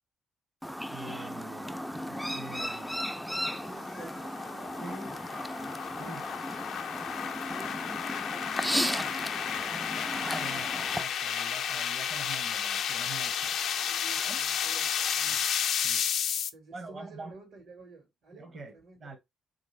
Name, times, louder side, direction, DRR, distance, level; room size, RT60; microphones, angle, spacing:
Chirp tweet, 0.6-11.0, equal, ahead, 0.3 m, -35 dB
voice 1, 0.9-3.2 4.8-5.1 6.0-6.3 10.1-13.6 14.2-14.4 15.3-15.4 15.8-16.0 16.7-17.3 18.3-19.2, right 3 dB, 40° right, 0.8 m, -45 dB
sound 1, 2.6-16.5, left 8 dB, 75° left, 0.4 m, -32 dB
voice 2, 3.5-5.2 7.4-10.0 13.7-15.5 16.5-19.2, right 3 dB, 70° right, 1.4 m, -52 dB
3.4 x 2.6 x 3.1 m
cardioid pair, 90°, 0 cm